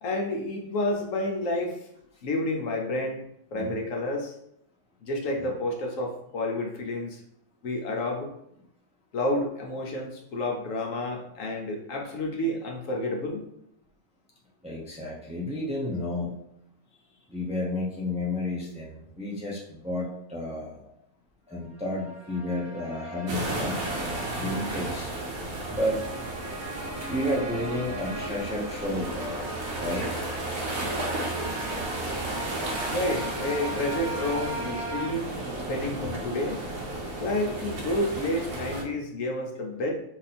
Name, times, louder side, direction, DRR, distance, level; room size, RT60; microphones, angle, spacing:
voice 1, 0.0-1.8 2.2-3.2 3.5-4.3 5.0-7.2 7.6-8.3 9.1-13.5 32.9-35.3 35.7-36.7 37.2-39.9, left 1 dB, 65° left, 1 dB, 1.1 m, -30 dB
voice 2, 14.6-16.3 17.3-20.8 21.5-23.8 24.4-25.1 25.7-26.0 27.1-29.5 29.8-30.2, left 1 dB, 5° right, -4 dB, 0.5 m, -31 dB
sound 1, 21.7-35.1, right 2 dB, 85° right, 1.6 m, -39 dB
sound 2, 23.3-38.8, right 2 dB, 70° right, 1.4 m, -33 dB
4.1 x 2.8 x 4.2 m, 0.77 s
omnidirectional pair, 1.5 m